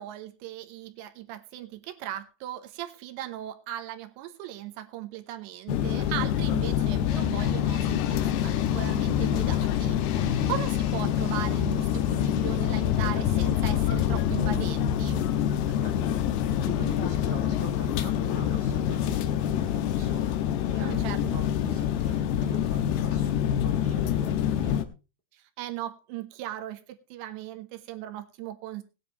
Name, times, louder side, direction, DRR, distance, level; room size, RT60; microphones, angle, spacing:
voice 1, 0.0-15.3 20.8-21.2 25.3-28.8, right 13 dB, 80° right, 7 dB, 3.2 m, -38 dB
sound 1, 5.7-24.8, left 10 dB, 75° left, 2.7 m, -26 dB
voice 2, 10.2-10.5 15.7-20.4 20.7-24.8, right 1 dB, 10° left, 1 dB, 0.9 m, -42 dB
18.5 x 9.8 x 3.1 m, 0.30 s
omnidirectional pair, 5.2 m